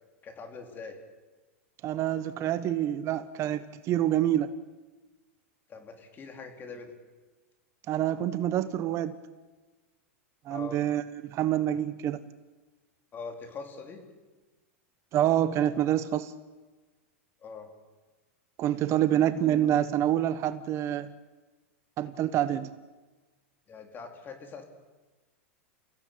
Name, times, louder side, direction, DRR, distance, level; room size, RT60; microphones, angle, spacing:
voice 1, 0.2-1.0 5.7-6.9 10.5-10.8 13.1-14.0 17.4-17.7 23.7-24.6, left 4 dB, 25° left, 4 dB, 4.3 m, -42 dB
voice 2, 1.8-4.5 7.9-9.1 10.4-12.2 15.1-16.3 18.6-21.1 22.0-22.7, right 11 dB, 40° right, 13 dB, 1.1 m, -27 dB
30.0 x 16.0 x 8.7 m, 1.3 s
hypercardioid pair, 110°, 8 cm